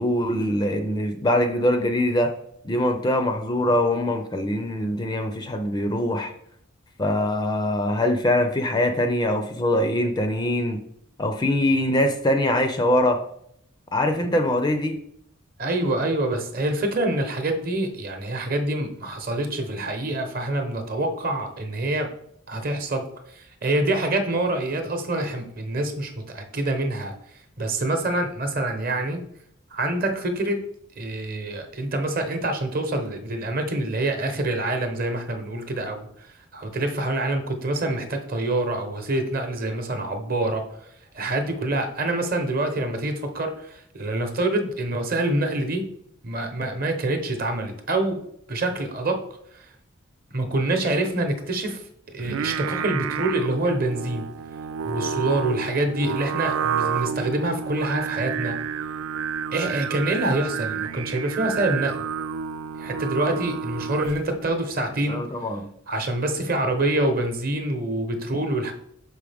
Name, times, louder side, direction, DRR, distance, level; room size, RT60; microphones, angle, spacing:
voice 1, 0.0-2.3 2.6-6.3 7.0-10.8 11.2-13.2 13.9-15.0 65.1-65.6, left 1 dB, 20° left, 6 dB, 0.4 m, -23 dB
voice 2, 15.6-22.1 22.5-23.0 23.3-27.1 27.6-29.2 29.7-30.6 31.0-40.6 41.1-45.8 46.2-48.2 48.5-49.2 49.5-49.7 50.3-51.8 52.1-54.2 54.8-58.5 59.5-62.0 62.8-65.3 65.9-68.7, right 2 dB, 45° right, 6 dB, 0.9 m, -26 dB
Singing, 52.2-64.4, right 7 dB, 70° right, 0.3 m, -30 dB
6.3 x 4.8 x 3.4 m, 0.71 s
head